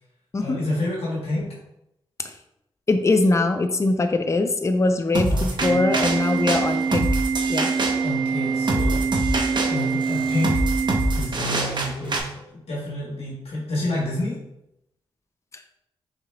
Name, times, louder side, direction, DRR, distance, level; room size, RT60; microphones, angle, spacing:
voice 1, 0.4-1.6 5.3-5.8 8.0-10.6 11.1-14.4, left 1 dB, 80° left, -4 dB, 1.3 m, -29 dB
voice 2, 2.9-7.1 7.5-7.7, left 2 dB, 30° left, 7 dB, 0.5 m, -22 dB
sound 1, 5.1-12.2, right 1 dB, 50° right, 0.9 m, -26 dB
Organ, 5.6-11.6, right 5 dB, 35° right, 0.4 m, -25 dB
5.9 x 3.7 x 2.3 m, 0.82 s
cardioid pair, 55°, 10 cm